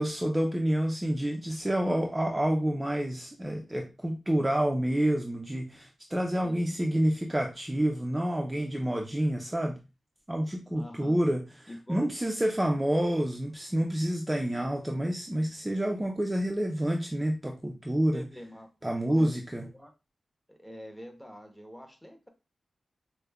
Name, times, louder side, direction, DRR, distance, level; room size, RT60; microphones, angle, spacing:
voice 1, 0.0-9.8 10.3-18.2 18.8-19.6, right 1 dB, 15° right, 2 dB, 0.5 m, -28 dB
voice 2, 6.4-6.8 10.7-11.2 11.7-12.5 18.1-19.3 19.6-19.9 20.5-22.3, left 1 dB, 5° left, 4 dB, 0.9 m, -46 dB
4.9 x 2.1 x 2.3 m, 0.27 s
cardioid pair, 75°, 0 cm